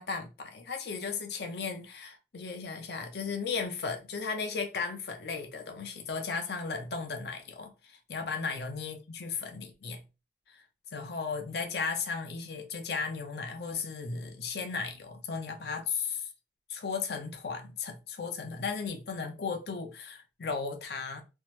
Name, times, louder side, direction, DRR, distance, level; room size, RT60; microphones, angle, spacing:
voice 1, 0.0-10.0 10.5-10.6 10.9-16.3 16.7-21.2, left 5 dB, 65° left, 0.6 m, -35 dB
3.4 x 2.0 x 2.9 m
head